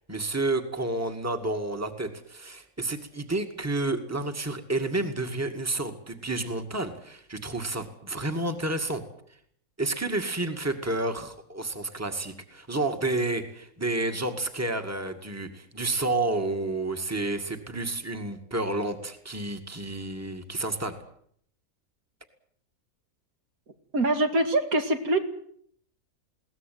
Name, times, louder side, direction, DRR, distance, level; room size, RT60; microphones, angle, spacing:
voice 1, 0.1-9.0 9.8-21.0, right 2 dB, 10° right, 7 dB, 2.2 m, -30 dB
voice 2, 23.9-25.2, right 2 dB, 70° right, 7 dB, 2.8 m, -24 dB
21.5 x 18.0 x 9.4 m, 0.66 s
omnidirectional pair, 1.5 m